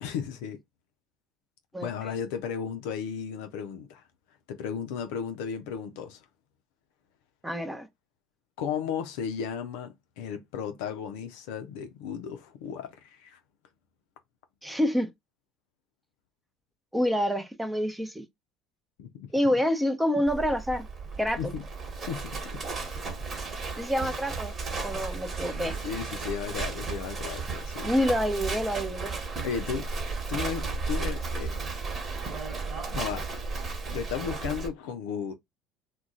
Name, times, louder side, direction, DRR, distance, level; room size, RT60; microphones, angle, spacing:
voice 1, 0.0-0.6 1.8-4.0 4.5-6.2 8.6-13.4 19.0-19.3 21.4-21.6 22.1-22.4 25.1-25.2 25.8-27.9 29.4-29.9 30.3-31.6 32.9-33.3 33.9-35.3, left 7 dB, 70° left, 0.4 m, -34 dB
voice 2, 7.4-7.9 14.6-15.1 16.9-18.2 19.3-20.9 21.2-21.4 23.8-24.5 24.8-25.8 27.8-29.2, equal, 10° right, 0.7 m, -27 dB
Livestock farm animals working animals, 20.3-34.7, right 4 dB, 35° right, 1.2 m, -34 dB
2.3 x 2.2 x 3.8 m
hypercardioid pair, 70°, 0 cm